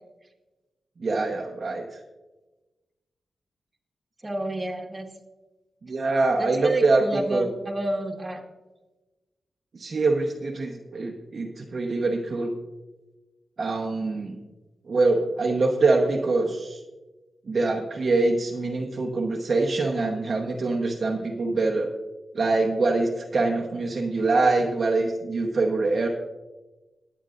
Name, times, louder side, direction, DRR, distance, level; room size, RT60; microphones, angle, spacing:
voice 1, 1.0-1.8 5.8-7.5 9.7-12.5 13.6-14.4 14.9-16.8 17.5-21.9 22.3-26.1, right 3 dB, 50° right, 0 dB, 1.0 m, -24 dB
voice 2, 4.2-5.1 6.4-8.4, right 1 dB, 20° right, 1 dB, 1.7 m, -29 dB
21.5 x 8.8 x 2.5 m, 1.1 s
wide cardioid pair, 110°, 0 cm